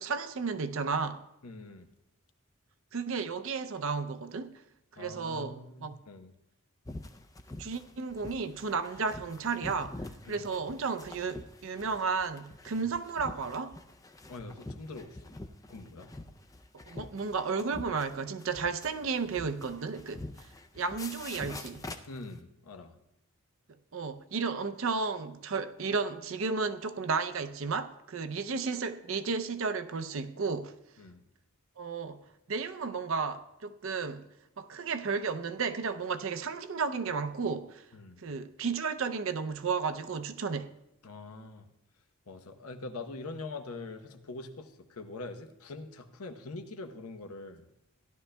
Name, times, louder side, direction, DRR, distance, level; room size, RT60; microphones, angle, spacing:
voice 1, 0.0-1.3 2.9-4.5 5.0-6.0 7.6-13.8 16.9-20.2 20.7-21.9 23.9-30.7 31.8-37.9 38.2-40.7, right 4 dB, 65° right, 0.5 m, -33 dB
voice 2, 1.4-1.9 5.0-6.3 10.3-10.5 12.8-12.9 14.3-15.4 15.7-16.1 22.1-22.9 31.0-31.2 37.9-38.2 41.0-41.7 42.3-47.7, left 3 dB, 85° left, 0.9 m, -44 dB
sound 1, 6.9-22.4, left 2 dB, 15° left, 0.4 m, -46 dB
17.0 x 11.5 x 2.2 m
head